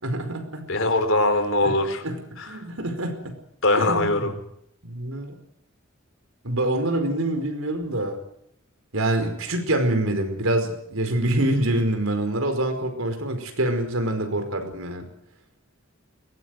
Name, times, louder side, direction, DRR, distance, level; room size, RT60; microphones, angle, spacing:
voice 1, 0.0-0.7 1.6-1.7 2.0-2.2 2.5-3.4 3.8-4.4 4.8-5.3 6.4-8.2 8.9-15.1, right 1 dB, 90° right, 7 dB, 5.0 m, -25 dB
voice 2, 0.7-2.0 2.4-2.5 3.6-4.3, left 2 dB, 70° left, 8 dB, 4.3 m, -21 dB
22.0 x 19.5 x 8.0 m, 0.73 s
head